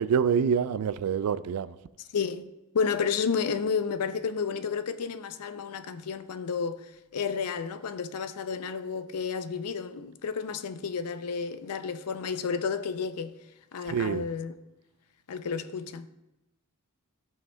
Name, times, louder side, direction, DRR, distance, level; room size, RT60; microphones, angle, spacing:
voice 1, 0.0-1.7 13.9-14.2, right 7 dB, 80° right, 0.3 m, -26 dB
voice 2, 2.1-2.5 2.7-6.9 7.1-13.3 13.7-14.6 15.3-16.1, left 6 dB, 80° left, 0.5 m, -31 dB
15.0 x 5.5 x 2.2 m
head